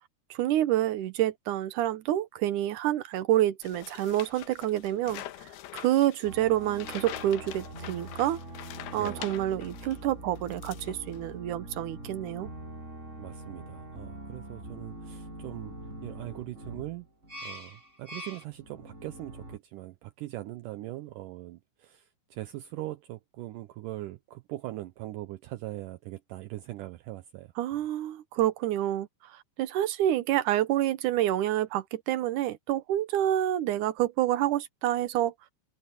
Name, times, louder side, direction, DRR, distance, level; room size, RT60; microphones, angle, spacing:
voice 1, 0.3-8.4 8.9-12.5 27.6-35.3, right 13 dB, 70° right, 2.1 m, -28 dB
sound 1, 3.6-10.0 10.4-11.3, left 13 dB, 80° left, 3.0 m, -44 dB
sound 2, 6.2-19.6, right 1 dB, 15° right, 6.7 m, -44 dB
voice 2, 8.9-9.3 13.2-15.7 16.0-17.1 17.4-22.1 22.3-27.5, right 16 dB, 85° right, 1.9 m, -41 dB
omnidirectional pair, 4.4 m